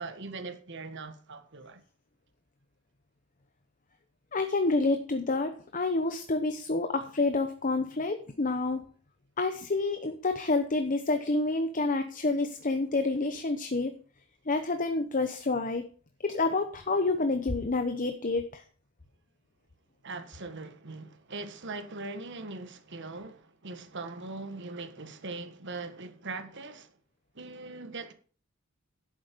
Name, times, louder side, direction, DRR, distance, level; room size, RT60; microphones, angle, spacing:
voice 1, 0.0-1.8 20.0-26.9 27.3-28.1, right 3 dB, 60° right, 1.4 m, -41 dB
voice 2, 4.3-8.8 9.4-13.9 14.5-15.9 16.2-18.6, left 3 dB, 40° left, 0.9 m, -28 dB
11.5 x 8.3 x 5.2 m
head